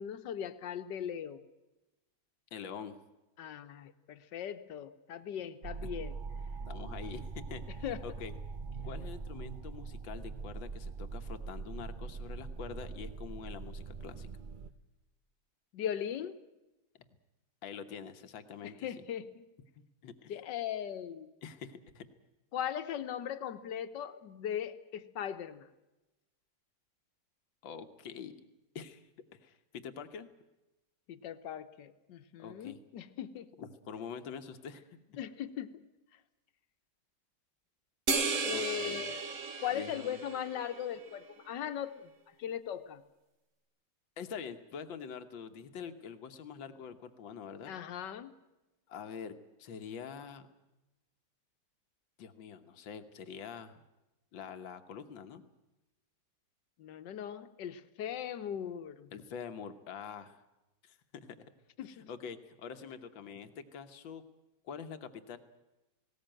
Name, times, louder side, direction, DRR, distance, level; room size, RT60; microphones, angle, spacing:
voice 1, 0.0-1.4 3.4-6.2 7.8-8.0 15.7-16.3 18.6-19.4 20.3-21.3 22.5-25.7 31.1-33.5 35.2-35.8 38.4-39.3 39.6-41.9 42.4-43.0 47.7-48.3 56.8-59.1 61.8-62.1, left 9 dB, 70° left, 11 dB, 1.7 m, -39 dB
voice 2, 2.5-3.0 5.8-5.9 6.7-7.6 8.0-8.4 8.8-14.3 17.6-18.9 19.8-20.3 21.4-22.0 27.6-28.3 28.8-29.0 29.3-30.3 32.4-32.8 33.6-35.0 38.5-39.1 39.7-40.2 44.2-47.7 48.9-49.3 49.6-50.5 52.2-53.8 54.3-55.5 59.1-60.4 60.8-61.4 62.1-64.2 64.6-65.4, left 6 dB, 85° left, 8 dB, 1.9 m, -45 dB
sound 1, 5.6-14.7, right 4 dB, 65° right, 0.5 m, -42 dB
sound 2, 38.1-40.8, right 4 dB, 45° right, 1.7 m, -34 dB
19.0 x 18.0 x 9.0 m, 1.0 s
omnidirectional pair, 2.0 m